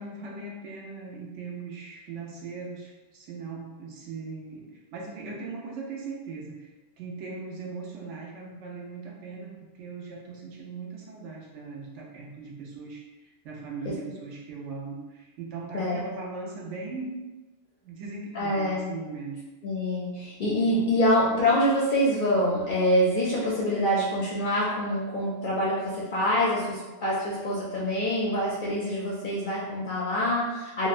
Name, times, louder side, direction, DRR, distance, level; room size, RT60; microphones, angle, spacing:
voice 1, 0.0-17.2 17.8-19.4, right 4 dB, 80° right, -2 dB, 0.9 m, -39 dB
voice 2, 18.3-18.9 19.6-30.9, equal, 60° left, -5 dB, 0.5 m, -25 dB
2.8 x 2.1 x 2.4 m, 1.1 s
omnidirectional pair, 1.2 m